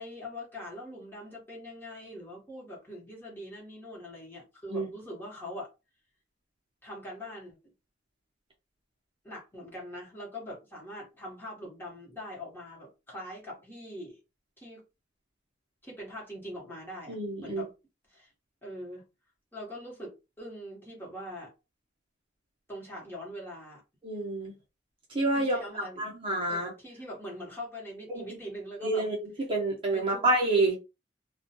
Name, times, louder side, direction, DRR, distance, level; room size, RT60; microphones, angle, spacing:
voice 1, 0.0-5.7 6.8-7.6 9.2-14.2 14.6-14.8 15.8-17.7 18.1-18.3 18.6-19.0 19.5-21.5 22.7-23.8 25.3-26.1 26.5-29.0 29.9-30.2, left 1 dB, 10° left, 1.0 m, -42 dB
voice 2, 17.1-17.6 24.0-24.5 25.1-26.7 28.1-28.2 28.8-29.2 29.5-30.8, right 2 dB, 30° right, 0.7 m, -28 dB
2.4 x 2.2 x 2.7 m
head